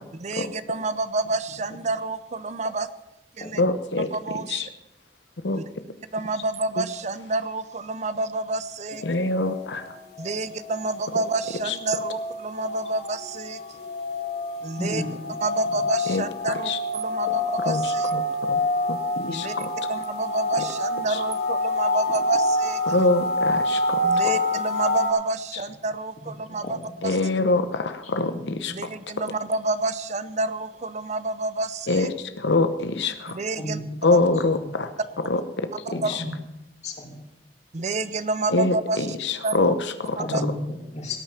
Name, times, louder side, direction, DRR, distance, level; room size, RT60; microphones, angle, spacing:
voice 1, 0.2-2.9 3.4-3.6 4.1-4.6 5.5-5.6 6.1-9.0 10.2-13.8 14.6-15.0 15.4-18.1 19.3-19.5 19.9-22.8 24.0-26.8 27.0-27.1 28.7-32.1 33.3-33.8 34.1-34.2 36.0-36.1 37.7-39.0 39.4-39.7 40.3-40.4, right 3 dB, 40° right, 13 dB, 0.6 m, -29 dB
voice 2, 3.6-4.7 5.4-5.6 6.8-6.9 9.0-9.9 11.6-11.8 16.1-16.8 17.6-18.6 18.9-19.9 21.1-21.2 22.9-24.4 27.0-28.7 31.9-33.4 34.0-34.9 35.2-36.2 38.5-40.5, left 2 dB, 85° left, 9 dB, 0.9 m, -25 dB
sound 1, 8.9-25.1, left 2 dB, 60° left, 3.2 m, -27 dB
voice 3, 14.8-15.2 17.3-17.4 26.2-26.3 26.6-26.7 28.3-28.5 33.6-33.8 34.5-34.7 35.9-36.3 36.8-37.2 40.2-41.2, left 1 dB, 40° left, 2 dB, 2.7 m, -32 dB
17.5 x 9.1 x 5.7 m, 0.94 s
head